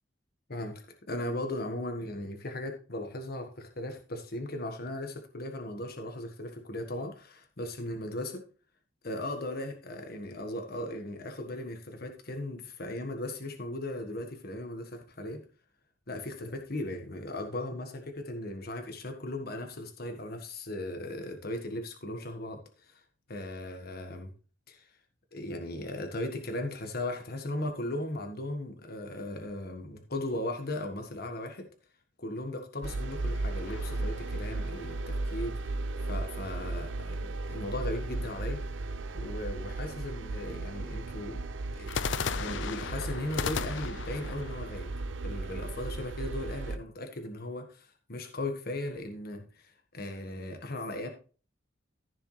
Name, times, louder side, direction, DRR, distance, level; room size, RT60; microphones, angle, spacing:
voice 1, 0.5-0.8 1.1-8.4 9.0-15.4 16.1-23.0 23.3-24.3 24.7-24.9 25.3-31.7 32.2-35.8 36.1-38.6 39.1-41.4 41.7-42.0 42.4-44.9 45.2-51.1, left 1 dB, 55° left, 5 dB, 1.5 m, -37 dB
sound 1, 32.8-46.8, right 2 dB, 75° right, 0.6 m, -36 dB
sound 2, 33.7-35.1 41.9-45.8, left 6 dB, 70° left, 0.5 m, -37 dB
14.5 x 6.8 x 3.2 m, 0.37 s
head